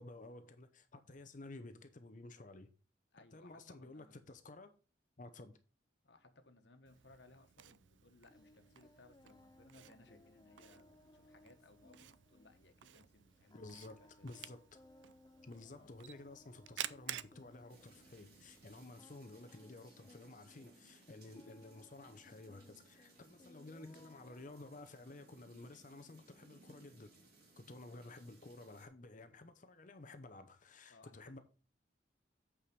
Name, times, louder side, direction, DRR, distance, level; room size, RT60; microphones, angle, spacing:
voice 1, 0.0-2.7 3.3-4.7 5.2-5.6 13.5-14.8 15.4-27.1 27.6-31.4, left 2 dB, 45° left, 0.8 m, -53 dB
voice 2, 3.1-4.2 6.0-14.3 15.7-16.0 30.9-31.4, left 2 dB, 65° left, 1.4 m, -64 dB
Camera, 6.9-18.9, right 12 dB, 80° right, 0.5 m, -52 dB
Singing, 8.3-24.9, left 2 dB, 20° left, 0.4 m, -65 dB
sound 1, 17.7-28.9, right 2 dB, 55° right, 3.3 m, -64 dB
8.7 x 4.9 x 5.3 m
head